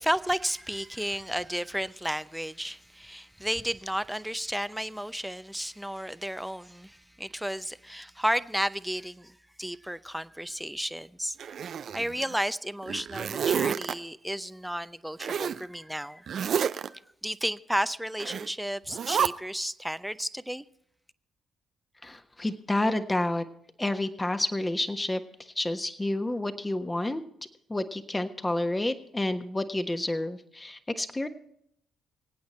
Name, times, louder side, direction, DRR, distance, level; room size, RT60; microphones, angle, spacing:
voice 1, 0.0-11.4 11.9-16.3 16.9-20.6, equal, 5° right, 0.7 m, -33 dB
Zipper (clothing), 11.4-12.4 12.8-13.9 15.2-15.6 16.3-16.9 18.2-18.5 18.9-19.3, right 8 dB, 60° right, 0.5 m, -29 dB
voice 2, 22.0-23.5 23.8-27.2 27.7-31.3, left 1 dB, 20° left, 1.3 m, -29 dB
25.0 x 8.8 x 4.3 m
hypercardioid pair, 50°, 0 cm